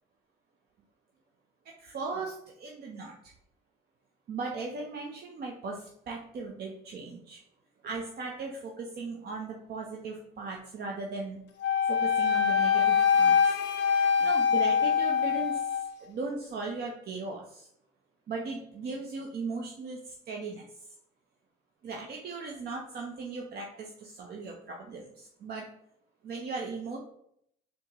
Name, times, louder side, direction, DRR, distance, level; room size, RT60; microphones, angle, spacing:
voice 1, 1.6-3.1 4.3-7.4 7.8-11.4 11.9-13.6 14.2-17.7 18.3-20.6 21.8-25.7 26.2-27.0, right 3 dB, 55° right, -1 dB, 0.7 m, -38 dB
Wind instrument woodwind instrument, 11.6-15.9, left 7 dB, 65° left, 0.5 m, -24 dB
4.3 x 2.4 x 3.0 m, 0.71 s
supercardioid pair, 65°, 20 cm